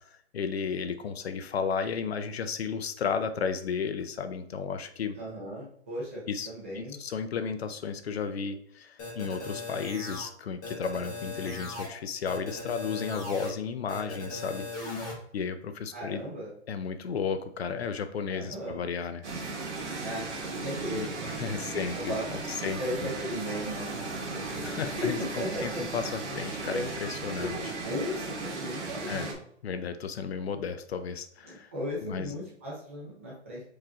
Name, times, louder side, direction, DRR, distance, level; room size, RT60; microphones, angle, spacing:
voice 1, 0.1-5.2 6.3-15.1 15.3-16.2 16.7-19.3 20.9-22.8 24.6-27.7 29.1-29.3 29.6-31.7 32.0-32.3, left 6 dB, 60° left, 10 dB, 0.6 m, -33 dB
voice 2, 5.2-7.0 7.3-7.4 15.9-16.5 18.3-18.8 20.0-20.3 20.6-21.3 21.6-22.5 22.8-25.8 26.2-26.3 26.7-26.9 27.3-29.3 31.4-33.6, left 1 dB, 10° right, -6 dB, 0.5 m, -37 dB
sound 1, 9.0-10.2 10.6-11.9 12.2-13.5 13.9-15.1, left 3 dB, 15° left, 0.8 m, -38 dB
sound 2, 19.2-29.3, right 3 dB, 80° right, 1.7 m, -36 dB
4.8 x 2.7 x 3.6 m, 0.68 s
hypercardioid pair, 170°, 34 cm